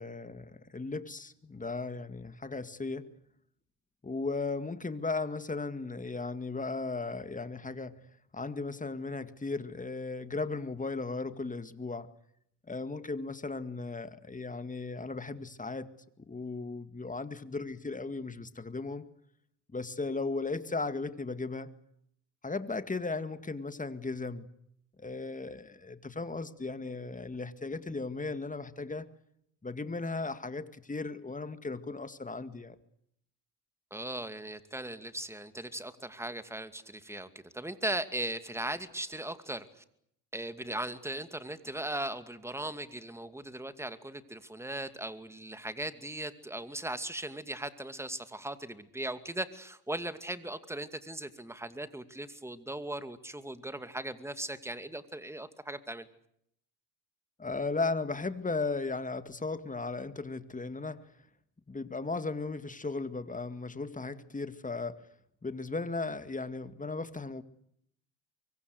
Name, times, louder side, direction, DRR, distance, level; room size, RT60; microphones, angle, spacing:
voice 1, 0.0-3.1 4.0-8.0 8.3-12.1 12.7-15.9 16.2-19.1 19.7-21.7 22.4-24.5 25.0-29.1 29.6-32.8 57.4-61.1 61.7-65.1 65.4-67.4, left 3 dB, 15° left, 11 dB, 2.1 m, -36 dB
voice 2, 33.9-37.3 37.5-39.8 40.3-56.1, right 1 dB, 5° right, 11 dB, 2.4 m, -38 dB
24.0 x 23.0 x 8.1 m, 0.72 s
supercardioid pair, 85°, 44 cm